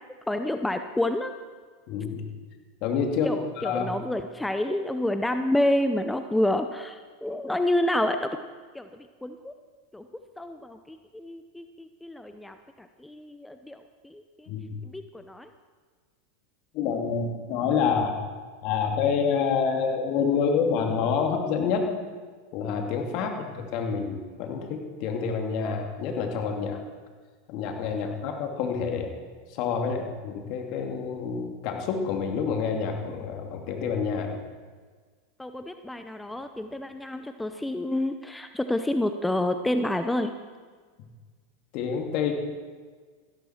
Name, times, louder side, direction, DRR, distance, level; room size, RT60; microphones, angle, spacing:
voice 1, 0.3-1.3 3.2-8.4 8.7-9.5 9.9-10.1 10.4-14.5 14.8-15.5 23.1-23.2 28.0-28.1 35.4-40.3, left 1 dB, 5° left, 8 dB, 0.7 m, -29 dB
voice 2, 1.9-2.2 2.8-3.9 14.5-14.8 16.7-18.1 18.6-22.0 22.5-26.8 27.5-29.1 29.5-34.4 41.7-42.3, left 6 dB, 55° left, 3 dB, 2.4 m, -28 dB
15.5 x 13.0 x 4.5 m, 1.5 s
hypercardioid pair, 100°, 0 cm